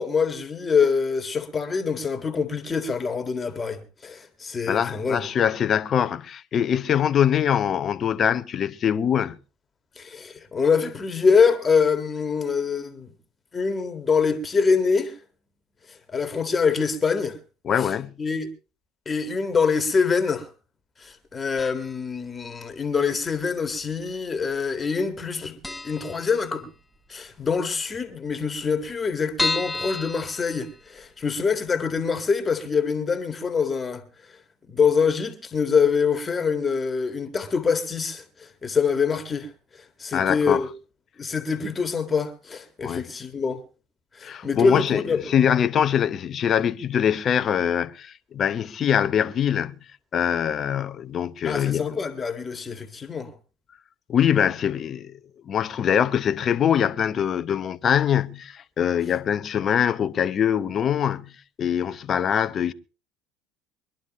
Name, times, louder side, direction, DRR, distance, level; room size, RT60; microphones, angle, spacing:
voice 1, 0.0-5.2 10.0-13.1 13.5-15.2 15.9-17.4 17.8-17.9 18.2-18.5 19.1-20.5 21.0-26.7 27.1-34.0 34.3-34.4 34.7-40.7 41.2-43.6 44.1-45.3 51.4-53.3, left 5 dB, 30° left, 1.9 m, -25 dB
voice 2, 4.7-9.4 17.6-18.2 40.1-40.6 42.8-43.0 44.2-49.8 50.1-52.0 54.1-55.1 55.5-62.7, left 9 dB, 45° left, 0.8 m, -23 dB
sound 1, 21.6-22.1 22.4-22.5 23.4-24.1 24.4-24.5 24.8-24.9 25.3-25.4 25.6-27.0 27.3-27.4 27.7-27.8 28.0-28.1 28.6-31.2 31.7-31.8 32.1-32.2, left 3 dB, 10° left, 1.1 m, -32 dB
23.5 x 11.5 x 3.1 m
hypercardioid pair, 75°, 0 cm